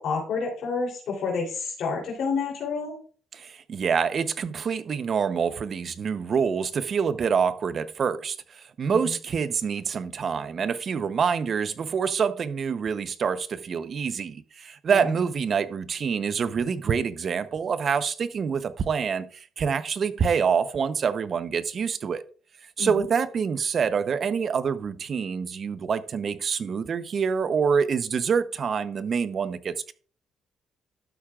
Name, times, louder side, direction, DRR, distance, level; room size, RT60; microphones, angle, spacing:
voice 1, 0.0-3.0 8.9-9.0 14.9-15.0 22.8-22.9, left 4 dB, 75° left, 3.3 m, -29 dB
voice 2, 3.3-22.2 22.8-29.9, right 6 dB, 50° right, 0.8 m, -26 dB
12.0 x 8.5 x 2.4 m
cardioid pair, 90°, 0 cm